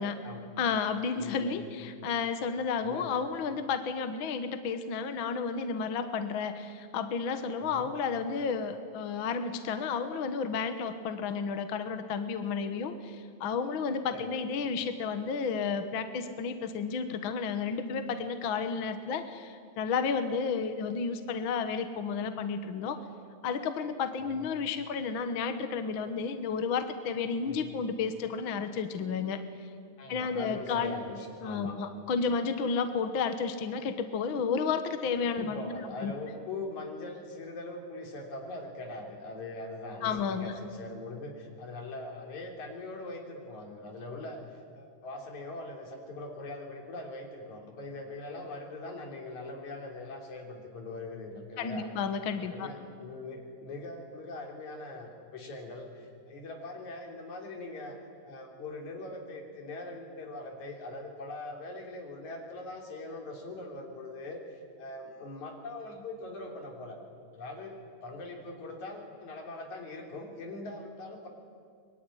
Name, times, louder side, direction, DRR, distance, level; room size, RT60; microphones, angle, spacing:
voice 1, 0.0-0.5 1.2-1.8 2.8-3.2 7.6-7.9 14.1-14.4 24.3-24.5 27.5-27.7 30.0-31.8 35.4-44.4 44.7-51.9 52.5-58.0 58.2-67.0 67.3-71.3, left 2 dB, 75° left, 2 dB, 4.7 m, -42 dB
voice 2, 0.6-23.0 23.4-29.4 30.1-30.9 31.4-36.1 40.0-40.5 51.6-52.7, left 5 dB, 55° left, 9 dB, 1.7 m, -32 dB
24.0 x 22.5 x 10.0 m, 2.2 s
omnidirectional pair, 3.4 m